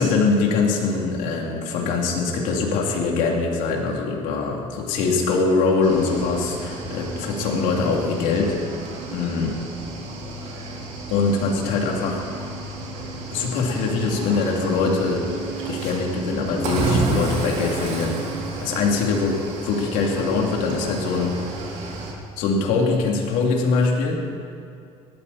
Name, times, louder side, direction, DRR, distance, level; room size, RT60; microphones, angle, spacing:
voice 1, 0.0-8.6 9.1-9.6 11.1-12.2 13.3-15.3 15.7-18.2 18.6-21.3 22.4-24.2, left 4 dB, 80° left, 0 dB, 2.9 m, -23 dB
Cricket / Waves surf, 5.8-22.1, right 3 dB, 65° right, 3.6 m, -31 dB
18.5 x 14.0 x 4.3 m, 2.6 s
cardioid pair, 115°, 13 cm